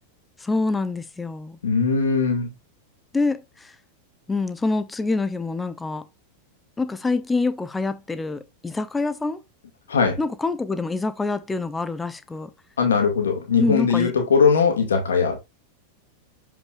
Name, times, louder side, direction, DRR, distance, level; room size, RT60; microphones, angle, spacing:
voice 1, 0.4-1.6 3.1-3.7 4.3-6.0 6.8-9.4 10.2-12.5 13.6-14.1, left 3 dB, 10° left, 0.8 m, -26 dB
voice 2, 1.6-2.5 9.9-10.2 12.8-15.4, left 5 dB, 65° left, 2.0 m, -20 dB
7.0 x 5.7 x 2.5 m
figure-of-eight pair, 90°, 0 cm